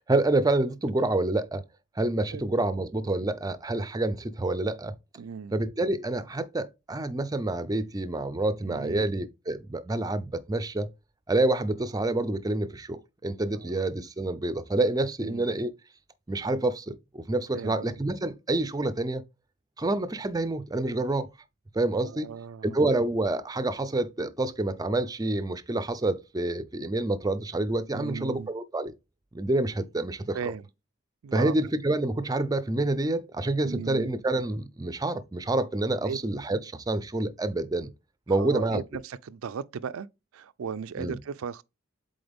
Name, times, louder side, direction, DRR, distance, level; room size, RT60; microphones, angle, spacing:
voice 1, 0.0-1.6 2.0-4.9 5.5-10.9 11.3-15.7 16.3-19.2 19.8-21.3 21.7-22.3 22.6-28.9 29.3-30.4 31.3-37.9 38.3-38.8 41.0-41.2, right 2 dB, 20° right, 0.5 m, -28 dB
voice 2, 5.2-5.5 8.6-9.1 13.5-13.8 15.2-15.4 17.5-17.9 22.0-22.8 27.9-28.5 30.3-30.7 31.2-31.5 33.6-34.1 36.0-36.2 38.4-40.1 40.3-41.6, right 6 dB, 90° right, 0.4 m, -36 dB
7.8 x 3.9 x 3.4 m
head